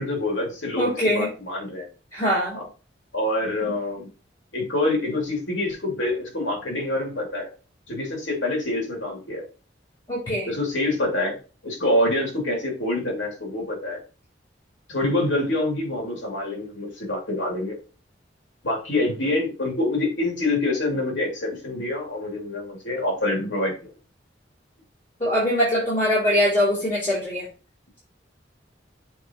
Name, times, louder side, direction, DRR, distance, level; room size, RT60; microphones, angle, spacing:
voice 1, 0.0-1.9 2.5-2.7 3.1-4.1 4.5-7.5 7.9-9.4 10.4-11.4 11.6-14.0 14.9-17.8 18.6-23.7, left 1 dB, 85° left, 0 dB, 2.8 m, -26 dB
voice 2, 0.8-1.3 2.1-2.6 10.1-10.5 25.2-27.5, equal, 30° left, -9 dB, 3.4 m, -22 dB
7.2 x 4.3 x 3.0 m, 0.35 s
head